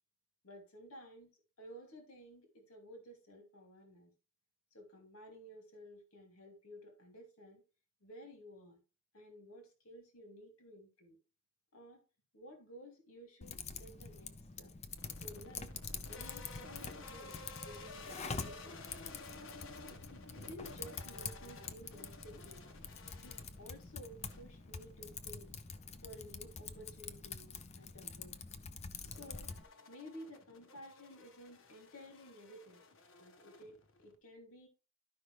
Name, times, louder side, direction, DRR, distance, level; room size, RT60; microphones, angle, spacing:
voice 1, 0.4-1.3 1.6-4.1 4.7-7.6 8.0-8.8 9.1-11.2 11.7-12.0 12.3-14.7 15.2-15.7 16.0-18.8 20.1-22.7 23.2-25.5 26.0-28.4 29.0-29.5 29.9-32.8 33.2-34.7, equal, 90° left, 2.7 m, -54 dB
Typing, 13.4-29.6, left 5 dB, 30° left, 0.6 m, -46 dB
sound 1, 15.0-34.2, left 3 dB, 65° left, 1.3 m, -54 dB
12.0 x 5.5 x 3.3 m
head